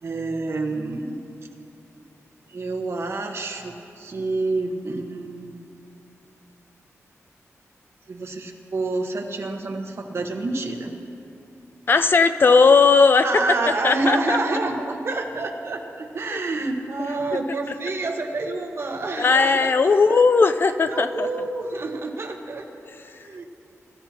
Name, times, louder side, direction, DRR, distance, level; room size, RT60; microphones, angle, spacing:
voice 1, 0.0-1.2 2.5-5.6 8.1-10.9 13.2-20.5 20.9-22.6 23.1-23.4, right 3 dB, 50° right, 2 dB, 1.3 m, -28 dB
voice 2, 11.9-13.2 13.8-14.4 16.3-16.4 17.0-17.1 19.2-21.3, left 4 dB, 40° left, 11 dB, 0.5 m, -17 dB
23.5 x 13.0 x 2.9 m, 2.7 s
wide cardioid pair, 150°, 5 cm